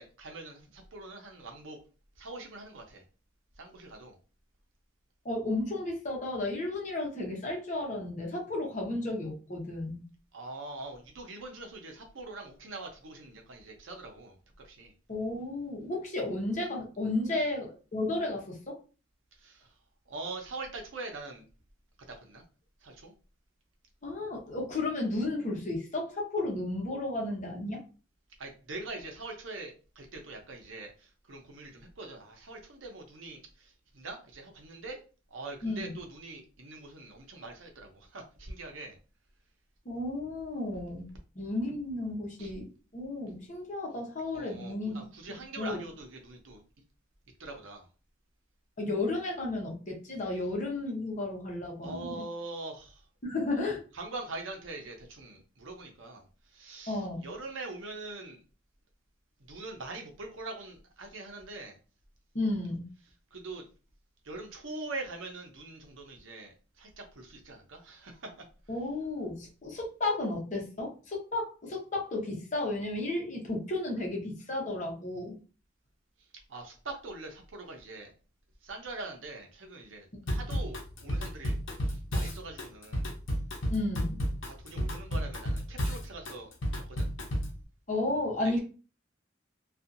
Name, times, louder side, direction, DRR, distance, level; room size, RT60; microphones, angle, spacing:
voice 1, 0.0-1.8 2.2-3.0 3.6-4.2 10.3-14.4 14.6-14.9 17.3-17.5 19.3-19.7 20.1-21.4 22.1-22.4 22.8-23.1 28.4-35.0 35.3-39.0 42.4-42.5 44.3-46.6 47.4-47.9 51.8-53.1 53.9-58.4 59.4-61.8 63.3-63.6 64.2-68.4 76.5-78.1 78.6-83.1 84.4-87.1 88.4-88.6, right 2 dB, 85° right, 2 dB, 0.7 m, -43 dB
voice 2, 5.2-10.0 15.1-18.8 24.0-27.8 35.6-35.9 39.8-41.1 41.4-42.7 42.9-45.0 45.6-45.8 48.8-52.2 53.2-53.8 56.9-57.3 62.3-62.8 68.7-75.4 83.7-84.2 87.9-88.6, left 2 dB, 40° left, 0 dB, 0.9 m, -33 dB
Drum kit / Drum, 80.3-87.6, equal, 75° left, 0.8 m, -32 dB
2.7 x 2.4 x 2.5 m, 0.35 s
head